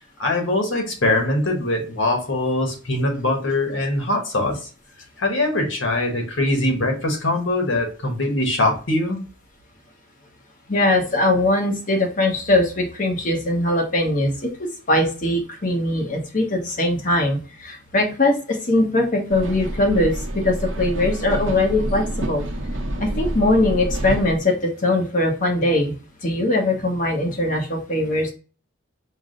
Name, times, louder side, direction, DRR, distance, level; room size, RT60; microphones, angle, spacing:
voice 1, 0.2-4.7 5.2-9.2, left 1 dB, 75° left, 2 dB, 1.2 m, -22 dB
voice 2, 10.7-14.5 14.9-22.4 23.0-25.9 26.2-28.3, left 2 dB, 45° left, 1 dB, 1.0 m, -21 dB
sound 1, 19.3-24.4, right 1 dB, 75° right, 0.8 m, -28 dB
4.6 x 2.1 x 3.7 m, 0.36 s
head